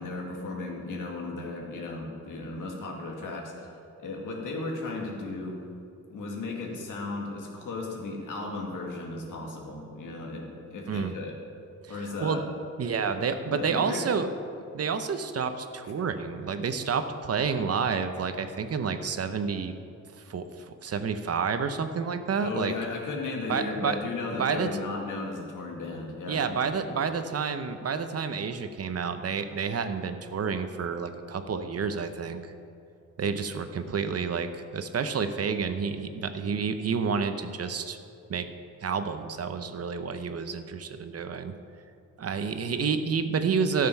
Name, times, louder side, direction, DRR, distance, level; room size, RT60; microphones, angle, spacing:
voice 1, 0.0-3.7 4.0-5.6 6.1-11.4 11.9-12.4 13.4-14.2 15.8-15.9 22.4-26.4 26.8-26.9, left 3 dB, 85° left, 0 dB, 2.0 m, -35 dB
voice 2, 11.8-12.4 12.8-14.3 14.7-19.7 20.2-22.7 23.5-24.0 24.4-24.7 26.3-32.5 33.2-38.0 38.3-38.5 38.8-41.5 42.2-43.9, right 5 dB, 50° right, 9 dB, 0.7 m, -29 dB
13.0 x 6.8 x 5.5 m, 2.6 s
wide cardioid pair, 115°, 31 cm